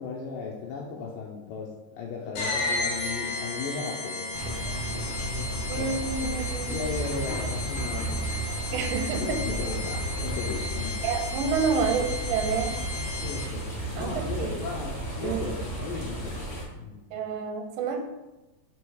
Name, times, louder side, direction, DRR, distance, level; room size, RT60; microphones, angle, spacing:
voice 1, 0.0-5.5 5.8-5.9 6.2-6.3 6.7-8.6 9.1-11.0 11.7-12.1 13.1-17.2, left 5 dB, 80° left, -2 dB, 2.0 m, -37 dB
sound 1, 2.3-13.7, left 2 dB, 65° left, 1.6 m, -34 dB
sound 2, 4.3-16.6, right 1 dB, 15° left, 0.9 m, -33 dB
voice 2, 5.7-6.9 8.7-9.4 11.0-12.8 14.0-14.6 15.2-15.5 17.1-18.0, right 6 dB, 90° right, 4 dB, 3.2 m, -29 dB
6.1 x 5.1 x 4.7 m, 1.0 s
omnidirectional pair, 5.0 m